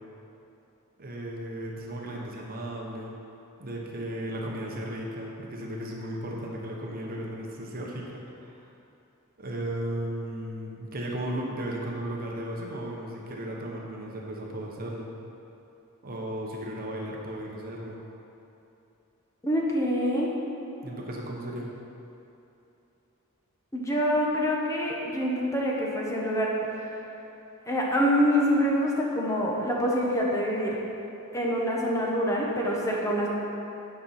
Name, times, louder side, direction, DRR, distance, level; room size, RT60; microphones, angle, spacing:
voice 1, 1.0-3.2 3.6-8.6 9.4-15.1 16.0-18.0 20.8-21.7, right 1 dB, 45° right, -2 dB, 1.1 m, -35 dB
voice 2, 19.4-20.3 23.7-26.5 26.8-26.9 27.7-30.8 31.3-33.3, equal, 15° left, -3 dB, 1.2 m, -26 dB
9.5 x 5.5 x 5.8 m, 2.9 s
head